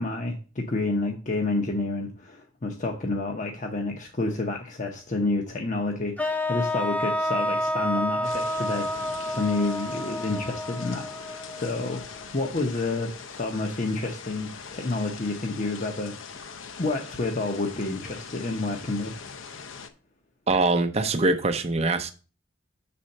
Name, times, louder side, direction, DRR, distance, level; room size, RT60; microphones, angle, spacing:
voice 1, 0.0-12.1 12.3-16.2 16.8-19.2, left 2 dB, 40° left, 0.8 m, -29 dB
sound 1, 6.2-12.2, left 1 dB, 5° left, 0.5 m, -29 dB
sound 2, 8.2-19.9, left 6 dB, 70° left, 0.7 m, -42 dB
voice 2, 20.5-22.1, right 3 dB, 30° right, 0.7 m, -23 dB
6.3 x 4.3 x 6.4 m
head